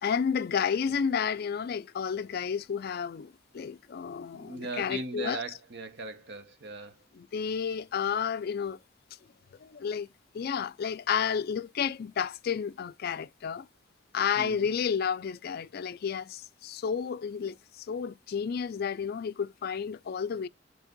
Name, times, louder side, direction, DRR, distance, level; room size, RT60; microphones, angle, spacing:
voice 1, 0.0-5.4 7.1-8.8 9.6-10.1 10.3-13.7 14.1-20.5, left 7 dB, 55° left, 0.4 m, -31 dB
voice 2, 4.3-7.0 14.4-14.7, right 3 dB, 65° right, 1.0 m, -39 dB
6.3 x 3.3 x 5.1 m
head